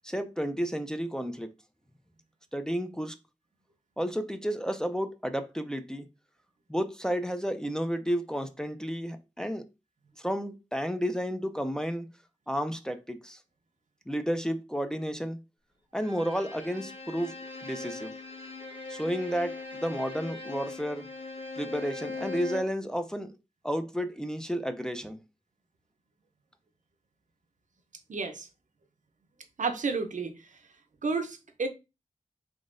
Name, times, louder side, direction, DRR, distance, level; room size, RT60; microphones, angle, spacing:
voice 1, 0.0-1.5 2.5-3.1 4.0-6.1 6.7-9.6 10.2-12.1 12.5-13.4 14.1-15.4 15.9-17.4 17.6-18.1 18.9-21.1 21.6-23.3 23.6-25.2, equal, 5° left, 0.4 m, -32 dB
Bowed string instrument, 16.0-22.8, left 3 dB, 50° left, 1.1 m, -40 dB
voice 2, 28.1-28.5 29.6-30.4 31.0-31.7, right 4 dB, 85° right, 0.7 m, -31 dB
3.7 x 3.5 x 2.5 m
wide cardioid pair, 90°, 13 cm